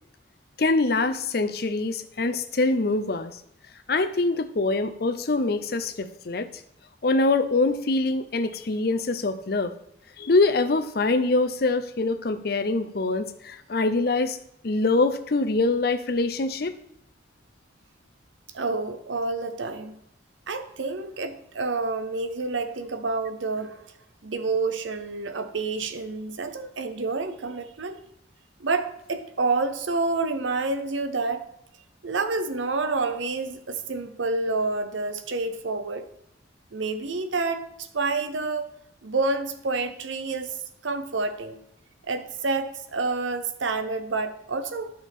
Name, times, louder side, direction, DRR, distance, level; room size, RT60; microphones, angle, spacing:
voice 1, 0.6-3.4 3.9-6.5 7.0-9.7 10.2-14.4 14.6-16.8, left 3 dB, 50° left, 11 dB, 0.6 m, -24 dB
voice 2, 18.5-20.0 20.5-23.9 24.2-28.0 28.6-31.4 32.0-36.1 36.7-38.7 39.0-41.6 42.1-44.9, right 3 dB, 80° right, 9 dB, 0.8 m, -28 dB
10.0 x 6.1 x 3.6 m, 0.75 s
head